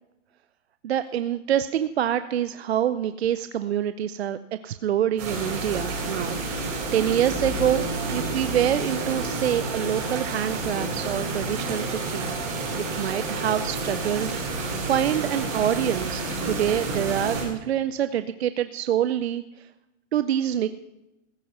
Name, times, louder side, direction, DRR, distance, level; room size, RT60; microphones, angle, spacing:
voice 1, 0.8-4.4 4.6-7.8 8.1-12.3 12.7-19.4 20.1-20.7, right 10 dB, 55° right, 11 dB, 0.6 m, -26 dB
sound 1, 5.2-17.4, right 3 dB, 30° right, 4.2 m, -29 dB
15.5 x 9.0 x 5.4 m, 0.95 s
hypercardioid pair, 175°, 39 cm